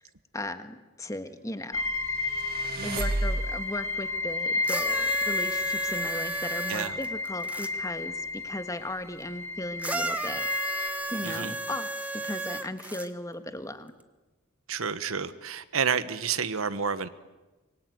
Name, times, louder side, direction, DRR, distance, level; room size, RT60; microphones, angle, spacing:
voice 1, 0.3-1.8 2.8-10.5 11.1-13.9, left 1 dB, 15° left, 9 dB, 1.6 m, -37 dB
sound 1, 1.7-10.9, left 3 dB, 65° left, 2.1 m, -32 dB
sound 2, 2.1-3.9, right 1 dB, 45° right, 1.8 m, -31 dB
sound 3, 4.6-7.7 9.8-13.1 14.0-14.1, right 2 dB, 5° right, 1.3 m, -34 dB
voice 2, 11.2-11.5 14.7-17.1, right 6 dB, 85° right, 13 dB, 1.2 m, -30 dB
25.5 x 23.5 x 9.4 m, 1.1 s
head